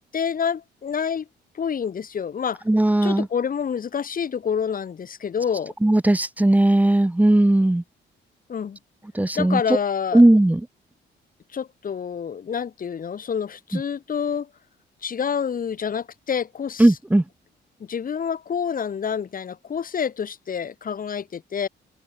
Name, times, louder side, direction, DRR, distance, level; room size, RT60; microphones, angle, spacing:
voice 1, 0.1-1.3 1.6-2.6 3.0-5.7 8.5-8.8 9.4-10.2 11.5-14.5 15.0-16.9 17.9-21.7, left 7 dB, 45° left, 1.8 m, -27 dB
voice 2, 2.7-3.3 5.8-7.8 9.1-9.6 10.1-10.6 13.7-13.8 16.8-17.2, right 1 dB, 10° right, 0.9 m, -17 dB
open air
cardioid pair, 90°, 20 cm